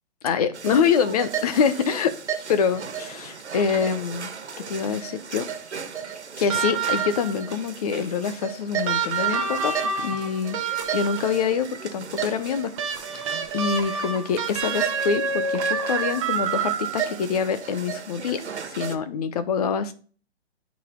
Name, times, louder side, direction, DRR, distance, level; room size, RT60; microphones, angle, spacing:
voice 1, 0.2-2.2 2.5-4.3 4.6-5.5 6.4-12.7 13.5-19.9, left 6 dB, 35° left, 12 dB, 0.8 m, -25 dB
sound 1, 0.5-19.0, right 7 dB, 85° right, 1.4 m, -35 dB
sound 2, 6.5-7.4 8.9-11.4 12.8-17.2 18.6-18.7, right 5 dB, 30° right, 1.1 m, -27 dB
9.0 x 4.1 x 3.7 m, 0.40 s
hypercardioid pair, 150°, 33 cm